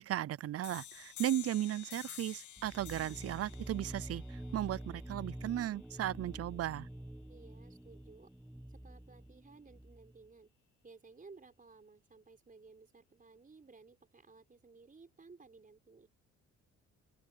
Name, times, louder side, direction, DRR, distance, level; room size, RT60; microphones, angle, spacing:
voice 1, 0.0-6.9, right 12 dB, 50° right, 0.5 m, -36 dB
sound 1, 0.6-6.0, left 12 dB, 75° left, 2.5 m, -51 dB
sound 2, 2.6-10.2, right 1 dB, 5° right, 1.2 m, -47 dB
voice 2, 7.3-8.3 8.7-10.5 10.8-16.1, right 4 dB, 30° right, 4.9 m, -58 dB
open air
cardioid pair, 90°, 30 cm